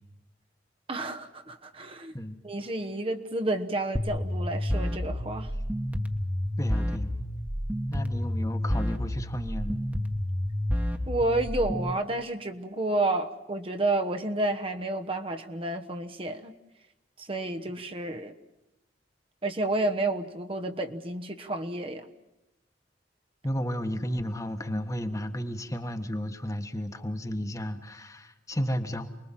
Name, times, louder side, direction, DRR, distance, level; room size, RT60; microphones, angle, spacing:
voice 1, 0.9-2.1 2.4-5.5 11.1-16.6 17.2-18.3 19.4-22.1, right 2 dB, 30° right, 5 dB, 1.1 m, -30 dB
sound 1, 4.0-12.0, equal, 10° right, 1.4 m, -30 dB
voice 2, 6.6-7.2 7.9-9.8 23.4-29.1, equal, 20° left, 7 dB, 1.4 m, -33 dB
29.0 x 21.5 x 7.5 m, 0.96 s
head